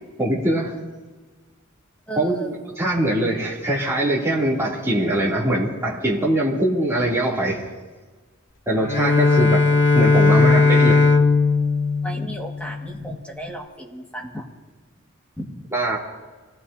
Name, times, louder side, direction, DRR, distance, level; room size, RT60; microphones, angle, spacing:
voice 1, 0.2-0.7 2.2-2.5 2.8-7.6 8.7-9.7 9.9-11.1 15.7-16.0, right 1 dB, 15° right, -6 dB, 2.9 m, -22 dB
voice 2, 2.1-2.6 12.0-14.5 15.4-15.6, equal, 5° left, -1 dB, 1.8 m, -34 dB
Bowed string instrument, 8.8-12.9, left 3 dB, 55° left, 1.0 m, -17 dB
26.5 x 17.5 x 2.8 m, 1.3 s
head